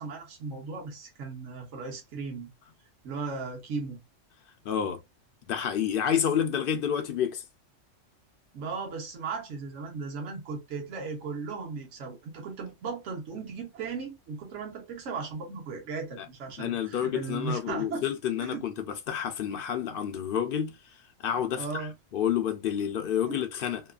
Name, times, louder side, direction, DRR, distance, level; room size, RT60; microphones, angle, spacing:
voice 1, 0.0-2.5 3.0-4.0 8.5-18.0 18.4-18.6 21.6-21.9 23.3-23.4, right 4 dB, 75° right, 1.2 m, -36 dB
voice 2, 4.6-5.0 5.5-7.4 16.6-20.8 21.2-23.8, left 9 dB, 60° left, 0.6 m, -29 dB
2.9 x 2.3 x 2.3 m
omnidirectional pair, 1.3 m